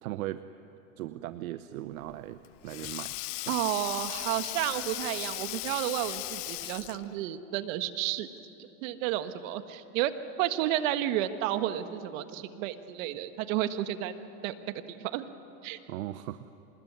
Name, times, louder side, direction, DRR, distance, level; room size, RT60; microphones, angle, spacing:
voice 1, 0.0-0.4 1.0-3.1 3.4-3.6 15.9-16.5, right 15 dB, 85° right, 12 dB, 0.8 m, -38 dB
Sink (filling or washing), 2.0-7.2, left 24 dB, 65° left, 0.6 m, -37 dB
voice 2, 3.5-8.3 8.8-10.1 10.4-14.2 14.4-15.3 15.6-15.8, right 13 dB, 70° right, 10 dB, 1.6 m, -31 dB
25.0 x 20.5 x 9.6 m, 2.9 s
supercardioid pair, 115°, 42 cm